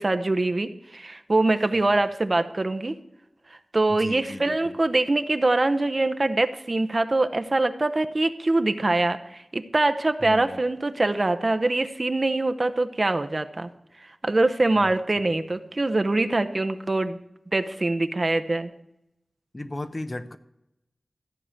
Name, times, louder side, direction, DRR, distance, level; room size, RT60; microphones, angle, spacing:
voice 1, 0.0-3.0 3.7-13.7 14.2-17.2 17.5-18.7, right 2 dB, 40° right, 9 dB, 0.8 m, -24 dB
voice 2, 3.9-4.8 10.2-10.6 14.7-15.0 15.3-15.5 19.5-20.4, left 1 dB, 35° left, 10 dB, 0.8 m, -36 dB
14.5 x 4.9 x 8.9 m, 0.85 s
wide cardioid pair, 70°, 0 cm